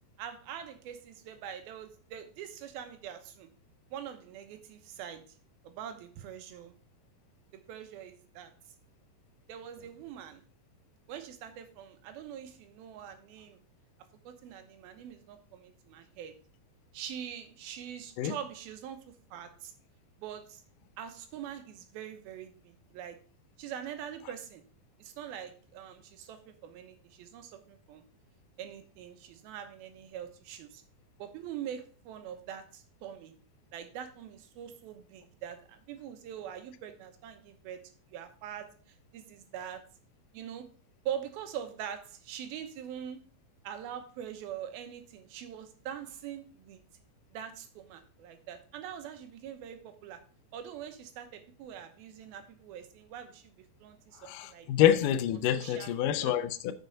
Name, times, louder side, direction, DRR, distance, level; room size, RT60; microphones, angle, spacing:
voice 1, 0.2-3.5 3.9-5.2 5.6-6.7 7.7-8.5 9.5-10.4 11.1-13.6 14.2-16.3 16.9-19.0 19.3-19.7 20.2-20.6 21.0-23.2 23.6-24.6 25.0-28.0 28.6-30.8 31.2-33.3 33.7-37.8 38.1-38.7 39.1-39.8 40.3-40.7 41.1-43.2 43.6-46.8 47.3-50.2 50.5-54.7 55.5-56.4, right 9 dB, 80° right, 2.9 m, -43 dB
voice 2, 54.3-56.7, left 11 dB, 75° left, 2.0 m, -27 dB
6.8 x 6.6 x 5.2 m
omnidirectional pair, 4.3 m